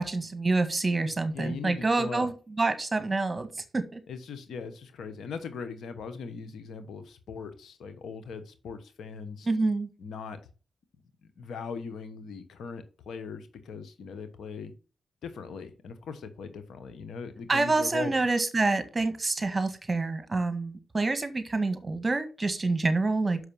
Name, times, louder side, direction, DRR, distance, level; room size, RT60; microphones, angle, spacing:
voice 1, 0.0-3.5 3.7-4.0 9.5-9.9 17.5-23.4, right 3 dB, 30° right, 10 dB, 1.7 m, -27 dB
voice 2, 1.3-2.3 4.1-9.5 10.0-10.4 11.4-14.7 15.2-18.3, left 5 dB, 75° left, 10 dB, 1.1 m, -40 dB
6.5 x 5.5 x 5.5 m, 0.35 s
supercardioid pair, 45°, 0 cm